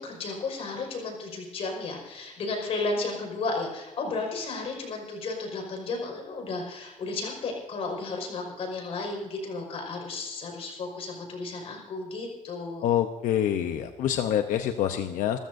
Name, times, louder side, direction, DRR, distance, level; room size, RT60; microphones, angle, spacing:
voice 1, 0.0-12.9, left 3 dB, 50° left, 1 dB, 5.2 m, -33 dB
voice 2, 12.8-15.4, left 10 dB, 90° left, 6 dB, 0.8 m, -26 dB
28.0 x 14.0 x 2.7 m, 1.1 s
cardioid pair, 175°, 13 cm